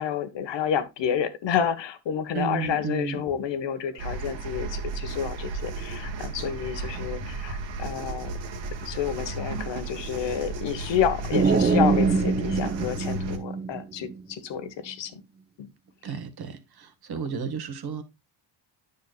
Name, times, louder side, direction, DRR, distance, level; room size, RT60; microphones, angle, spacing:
voice 1, 0.0-8.3 8.8-15.2 15.6-15.7, left 8 dB, 65° left, 1.4 m, -29 dB
voice 2, 2.3-3.2 4.0-4.2 6.7-7.4 11.3-11.8 16.0-18.0, right 6 dB, 50° right, 1.7 m, -33 dB
sound 1, 4.0-13.4, right 3 dB, 70° right, 2.1 m, -34 dB
sound 2, 11.4-14.1, right 4 dB, 20° right, 0.8 m, -24 dB
9.7 x 6.8 x 2.4 m
cardioid pair, 90°, 47 cm